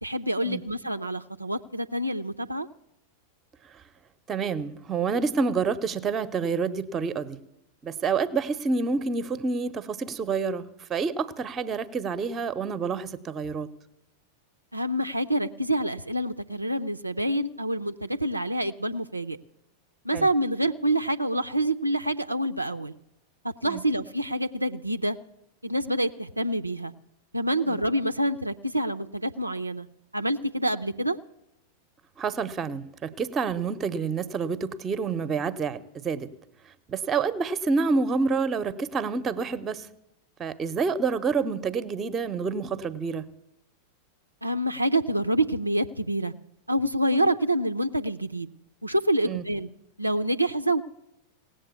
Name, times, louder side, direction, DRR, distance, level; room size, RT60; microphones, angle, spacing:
voice 1, 0.0-2.7 14.7-19.4 20.0-22.9 23.6-25.2 25.6-26.9 27.3-29.9 30.1-31.2 44.4-46.3 46.7-48.5 48.8-49.7 50.0-50.8, right 1 dB, 85° right, 7 dB, 0.4 m, -27 dB
voice 2, 4.3-7.4 7.8-13.7 20.1-20.3 23.6-23.8 27.7-27.8 32.2-36.3 36.9-39.9 40.4-43.3 49.3-49.4, right 5 dB, 20° right, 13 dB, 0.8 m, -28 dB
17.5 x 7.7 x 8.2 m, 0.84 s
figure-of-eight pair, 90°, 0 cm